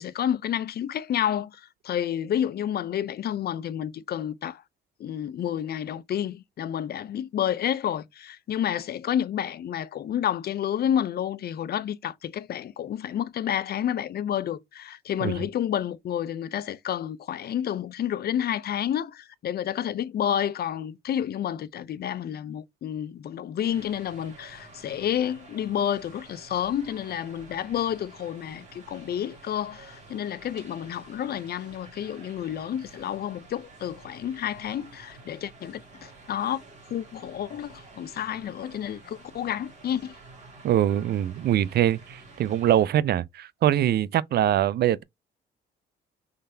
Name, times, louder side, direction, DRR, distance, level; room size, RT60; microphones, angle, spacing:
voice 1, 0.0-4.6 5.0-36.6 36.9-40.2, left 10 dB, 55° left, 0.5 m, -30 dB
sound 1, 23.6-42.8, right 3 dB, 35° right, 2.0 m, -50 dB
voice 2, 40.6-45.0, right 11 dB, 55° right, 0.4 m, -23 dB
3.9 x 3.2 x 2.7 m
cardioid pair, 90°, 20 cm